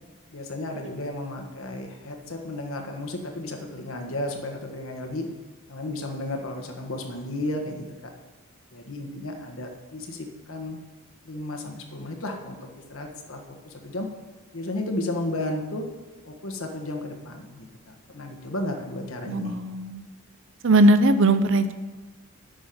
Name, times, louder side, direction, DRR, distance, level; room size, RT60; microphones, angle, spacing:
voice 1, 0.3-5.3 5.7-8.1 8.7-10.8 11.2-14.1 14.5-15.8 16.3-19.6, left 1 dB, 65° left, 3 dB, 1.5 m, -33 dB
voice 2, 19.3-20.0 20.6-21.7, right 1 dB, 60° right, 11 dB, 0.6 m, -19 dB
9.0 x 6.3 x 7.6 m, 1.3 s
head